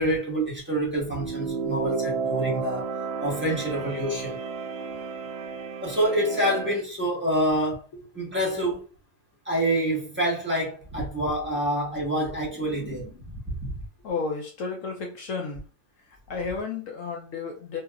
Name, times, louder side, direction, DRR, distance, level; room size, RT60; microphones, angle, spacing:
voice 1, 0.0-2.8 3.2-4.4 5.8-7.8 8.1-8.8 9.4-13.2 13.6-13.8, right 1 dB, 10° right, 1.0 m, -27 dB
sound 1, 1.0-6.8, right 5 dB, 90° right, 1.1 m, -32 dB
voice 2, 14.0-15.6 16.3-17.8, left 4 dB, 70° left, 0.9 m, -32 dB
2.9 x 2.8 x 2.3 m
omnidirectional pair, 1.6 m